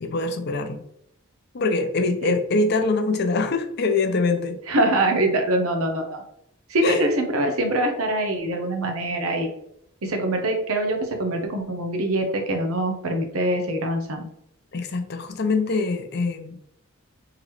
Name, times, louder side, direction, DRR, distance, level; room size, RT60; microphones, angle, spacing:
voice 1, 0.0-0.8 1.5-4.6 6.8-7.0 14.7-16.6, left 3 dB, 50° left, 7 dB, 0.5 m, -24 dB
voice 2, 4.7-6.2 6.7-9.5 10.0-14.3, right 1 dB, 80° right, 4 dB, 0.7 m, -24 dB
3.8 x 3.0 x 3.1 m, 0.73 s
head